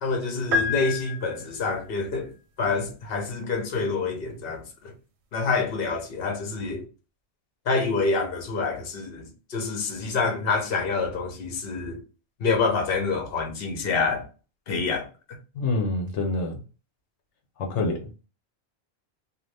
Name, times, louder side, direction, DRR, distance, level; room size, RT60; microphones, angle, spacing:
voice 1, 0.0-2.3 2.6-4.9 5.3-6.8 7.7-12.0 12.4-14.3 14.7-15.1, left 4 dB, 60° left, 1.0 m, -27 dB
sound 1, 0.5-1.8, left 4 dB, 80° right, 0.9 m, -28 dB
voice 2, 15.6-16.6 17.6-18.3, left 2 dB, 90° left, 1.0 m, -27 dB
2.6 x 2.4 x 3.2 m
omnidirectional pair, 1.2 m